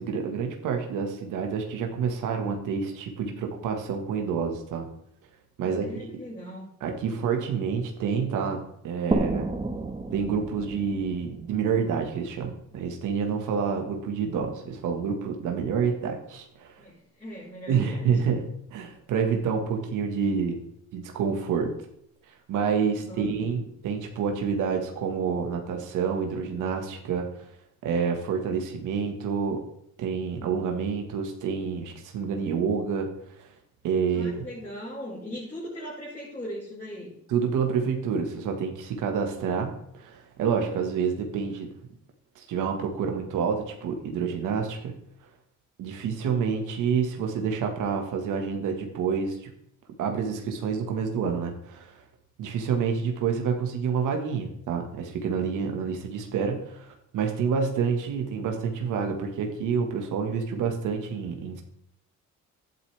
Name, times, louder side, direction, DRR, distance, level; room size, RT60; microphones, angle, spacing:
voice 1, 0.0-4.9 5.6-6.1 6.8-9.5 10.1-16.7 17.7-18.4 18.7-20.6 20.9-21.7 22.5-27.5 27.8-29.6 30.0-33.1 33.4-33.5 33.8-34.4 37.3-41.7 42.3-44.9 45.8-49.5 50.0-52.0 52.4-61.6, right 6 dB, 85° right, 3 dB, 1.7 m, -28 dB
voice 2, 5.6-6.7 16.8-18.1 22.8-23.4 34.1-37.1, equal, 25° left, -8 dB, 5.5 m, -39 dB
sound 1, 9.1-12.6, right 2 dB, 20° right, 1.4 m, -31 dB
12.0 x 11.0 x 3.4 m, 0.72 s
cardioid pair, 90°, 30 cm